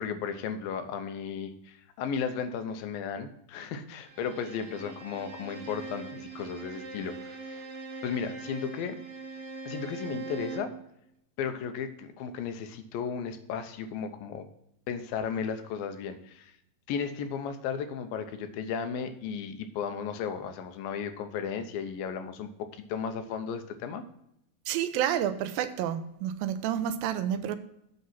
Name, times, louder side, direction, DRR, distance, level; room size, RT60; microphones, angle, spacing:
voice 1, 0.0-7.4 8.0-9.0 9.7-10.7 11.4-14.5 14.9-16.5 16.9-24.0, left 6 dB, 80° left, 8 dB, 2.6 m, -35 dB
Bowed string instrument, 4.0-10.8, right 4 dB, 50° right, 2.8 m, -41 dB
voice 2, 24.7-27.6, right 10 dB, 90° right, 11 dB, 2.4 m, -29 dB
8.2 x 6.5 x 5.8 m, 0.79 s
omnidirectional pair, 4.1 m